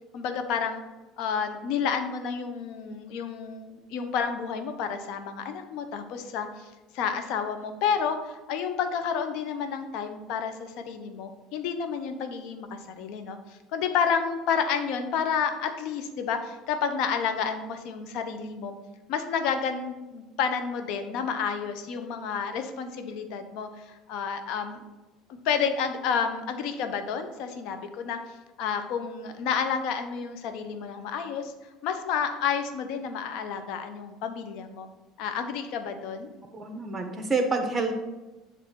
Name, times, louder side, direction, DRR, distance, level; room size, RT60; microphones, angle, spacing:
voice 1, 0.1-0.8 1.2-18.8 19.1-24.8 25.3-31.5 31.8-34.9 35.2-36.3, left 6 dB, 65° left, 7 dB, 0.8 m, -30 dB
voice 2, 36.5-38.0, right 3 dB, 20° right, 5 dB, 1.3 m, -28 dB
7.5 x 3.3 x 6.1 m, 1.1 s
supercardioid pair, 90°, 0 cm